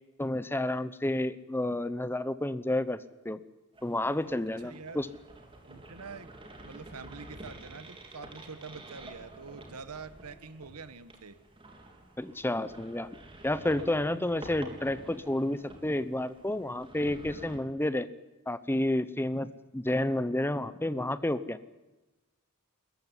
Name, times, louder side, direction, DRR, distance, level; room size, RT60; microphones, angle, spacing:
voice 1, 0.2-3.4 3.8-5.1 12.2-13.1 13.4-18.1 18.5-21.6, left 1 dB, 10° left, 14 dB, 0.8 m, -30 dB
sound 1, 3.7-17.6, right 2 dB, 25° right, 3.6 m, -49 dB
voice 2, 4.6-5.0 5.7-11.4, right 4 dB, 85° right, 13 dB, 1.4 m, -46 dB
25.5 x 14.5 x 9.9 m, 1.1 s
head